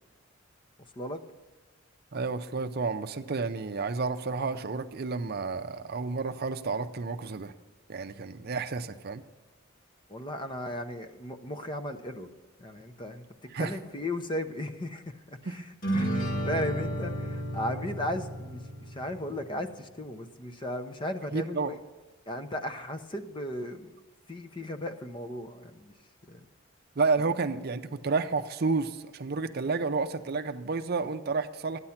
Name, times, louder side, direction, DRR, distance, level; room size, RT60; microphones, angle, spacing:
voice 1, 2.1-7.5 7.9-9.2 13.5-13.7 15.5-15.6 21.3-21.7 27.0-31.8, right 4 dB, 50° right, 8 dB, 0.6 m, -30 dB
voice 2, 10.1-12.3 12.6-15.7 15.9-21.8 22.3-23.9 24.3-25.9 26.2-26.4, left 1 dB, 25° left, 8 dB, 0.7 m, -36 dB
sound 1, 15.8-19.4, right 1 dB, 45° left, 1.8 m, -32 dB
13.0 x 9.7 x 5.8 m, 1.3 s
head